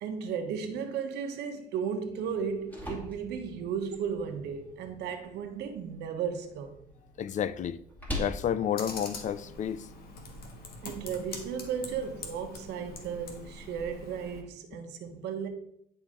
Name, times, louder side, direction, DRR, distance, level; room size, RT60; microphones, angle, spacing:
voice 1, 0.0-6.8 10.8-15.5, right 7 dB, 80° right, 1.2 m, -35 dB
sound 1, 2.3-10.2, left 1 dB, 10° left, 2.1 m, -44 dB
voice 2, 7.2-7.8 8.1-9.9, left 9 dB, 45° left, 0.5 m, -31 dB
Computer keyboard, 8.8-14.4, left 3 dB, 65° left, 1.6 m, -44 dB
10.5 x 4.9 x 3.8 m
cardioid pair, 110°, 17 cm